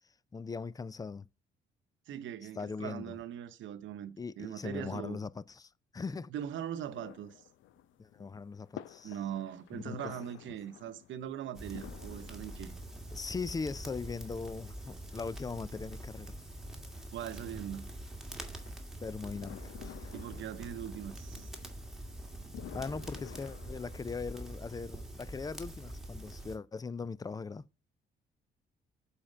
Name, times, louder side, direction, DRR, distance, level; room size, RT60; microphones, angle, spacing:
voice 1, 0.3-1.3 2.6-3.2 4.2-6.3 8.0-9.1 9.7-10.2 10.5-10.6 13.1-16.3 19.0-20.2 22.7-27.8, left 4 dB, 20° left, 0.4 m, -40 dB
voice 2, 2.1-5.2 6.3-7.4 9.0-12.7 17.1-17.9 20.1-21.5, right 10 dB, 70° right, 0.8 m, -41 dB
sound 1, 6.7-24.3, left 12 dB, 80° left, 0.6 m, -53 dB
sound 2, 11.5-26.6, right 1 dB, ahead, 1.7 m, -45 dB
7.2 x 4.4 x 5.1 m
cardioid pair, 90°, 20 cm